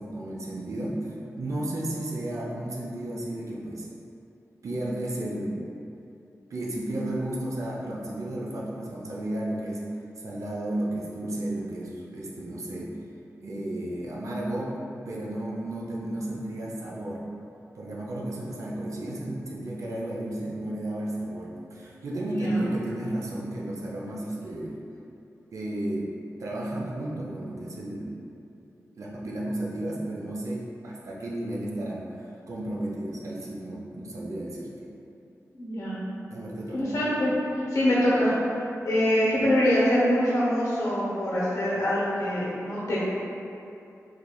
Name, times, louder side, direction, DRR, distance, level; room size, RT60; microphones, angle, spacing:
voice 1, 0.0-3.9 4.6-5.6 6.5-9.9 10.2-12.9 13.4-14.8 15.0-17.2 17.7-24.8 25.5-26.1 26.4-28.1 28.9-32.1 32.5-34.7 36.3-36.8, right 1 dB, 70° right, -4 dB, 0.5 m, -33 dB
voice 2, 22.3-22.6 35.5-36.0 36.7-38.3 38.8-43.0, equal, 75° left, -8 dB, 1.1 m, -24 dB
3.9 x 3.0 x 2.2 m, 2.7 s
wide cardioid pair, 130°, 6 cm